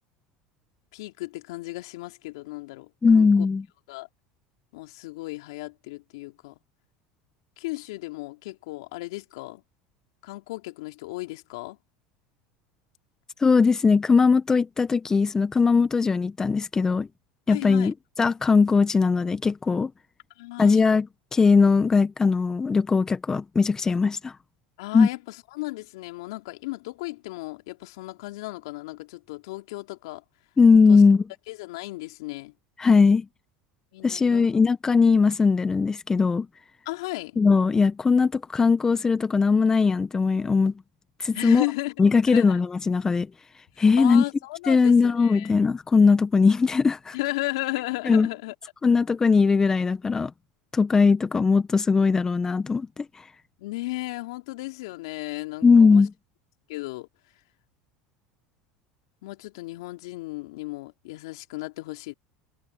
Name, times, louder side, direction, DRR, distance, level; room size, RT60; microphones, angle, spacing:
voice 1, 0.9-3.3 3.9-4.1 4.7-6.5 7.6-9.6 10.2-11.8 17.5-17.9 20.4-20.8 24.8-25.2 25.5-30.2 30.9-31.0 31.5-32.5 33.9-34.5 36.8-37.4 41.3-41.9 42.3-42.6 44.0-45.5 47.1-48.5 53.6-56.1 56.7-57.1 59.2-62.1, left 21 dB, 75° left, 3.3 m, -35 dB
voice 2, 3.0-3.6 13.4-17.1 17.5-19.9 20.6-24.3 24.9-25.1 30.6-31.2 32.8-33.2 34.0-36.5 37.4-40.7 41.2-41.6 42.0-43.3 43.8-44.2 44.7-47.1 48.0-48.3 48.8-50.3 50.7-53.0 55.6-56.1, left 5 dB, 20° left, 1.4 m, -20 dB
hypercardioid pair, 85°, 3 cm